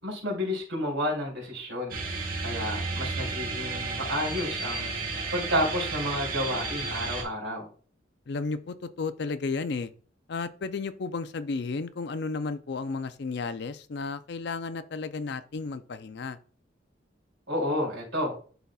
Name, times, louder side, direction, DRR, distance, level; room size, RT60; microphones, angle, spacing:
voice 1, 0.0-2.0 2.4-4.9 5.3-7.7 17.5-18.3, left 1 dB, 70° right, -3 dB, 3.1 m, -30 dB
sound 1, 1.9-7.2, right 3 dB, 50° right, 1.5 m, -32 dB
voice 2, 8.3-9.9 10.3-16.4, left 4 dB, 60° left, 12 dB, 0.5 m, -33 dB
11.0 x 4.0 x 2.3 m, 0.42 s
head